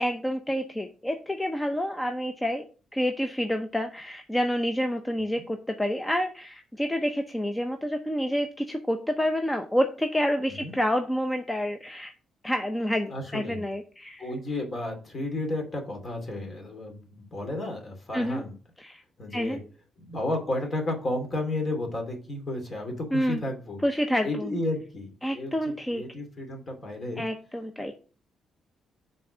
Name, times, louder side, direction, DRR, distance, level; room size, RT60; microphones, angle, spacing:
voice 1, 0.0-2.6 2.9-12.1 12.4-14.3 18.1-18.4 18.8-19.0 19.3-19.6 23.1-23.4 23.8-24.5 25.2-26.0 27.2-27.9, equal, 10° left, 6 dB, 0.6 m, -28 dB
voice 2, 13.1-13.6 14.2-18.5 19.2-19.6 20.0-23.8 24.2-27.2 27.8-27.9, left 2 dB, 40° left, 3 dB, 2.4 m, -32 dB
5.8 x 3.7 x 6.0 m, 0.37 s
cardioid pair, 80°, 0 cm